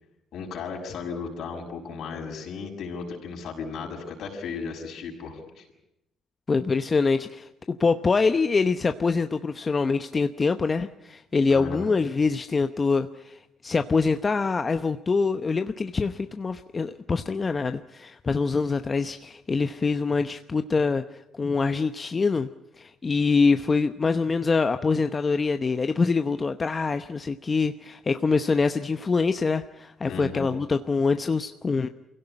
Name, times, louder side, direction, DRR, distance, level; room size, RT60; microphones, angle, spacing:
voice 1, 0.3-5.7 11.5-11.9 30.0-30.5, left 5 dB, 70° left, 2 dB, 6.4 m, -35 dB
voice 2, 6.5-21.0 21.3-22.5 22.8-31.9, left 4 dB, 30° left, 9 dB, 0.9 m, -24 dB
24.5 x 17.0 x 10.0 m, 0.87 s
cardioid pair, 85°, 0 cm